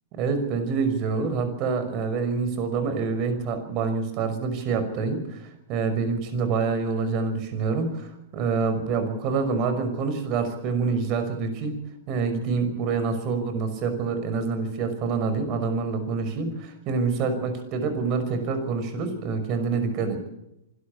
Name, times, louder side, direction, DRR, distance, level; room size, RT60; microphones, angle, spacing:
voice 1, 0.2-11.8 12.1-20.2, right 4 dB, 40° right, 9 dB, 5.7 m, -26 dB
26.0 x 13.0 x 8.6 m, 0.86 s
hypercardioid pair, 110°, 0 cm